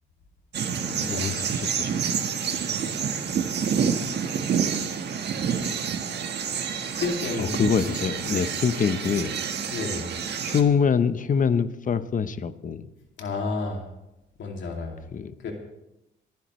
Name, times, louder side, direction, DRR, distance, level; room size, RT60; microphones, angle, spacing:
sound 1, 0.5-10.6, right 7 dB, 60° right, 1.5 m, -28 dB
voice 1, 0.9-2.2 2.7-2.8 7.4-9.3 9.6-9.7 10.4-12.9 15.1-15.3, left 6 dB, 40° left, 12 dB, 0.9 m, -25 dB
voice 2, 7.0-7.6 9.7-10.0 13.2-13.8 14.4-15.0 15.4-15.5, left 3 dB, 70° left, 1 dB, 2.6 m, -30 dB
25.0 x 10.5 x 3.2 m, 0.89 s
cardioid pair, 90°, 20 cm